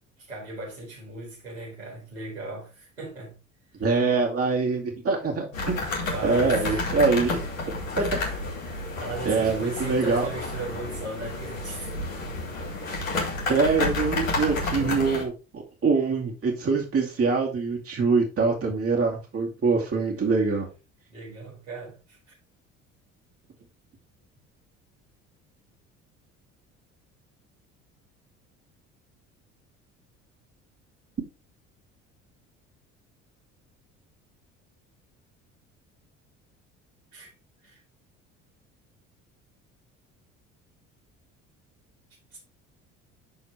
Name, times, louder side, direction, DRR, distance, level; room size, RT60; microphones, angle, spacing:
voice 1, 0.2-3.4 5.8-6.9 8.0-12.0 13.5-13.6 21.1-22.2 37.1-37.3 37.6-37.8 42.3-42.4, right 2 dB, 85° right, 4.7 m, -38 dB
voice 2, 3.8-5.8 6.2-7.4 8.0-8.1 9.2-10.3 13.5-20.7, right 4 dB, 35° right, 2.5 m, -24 dB
sound 1, 5.5-15.2, left 2 dB, 85° left, 2.0 m, -30 dB
12.5 x 4.3 x 3.4 m
figure-of-eight pair, 55°, 39 cm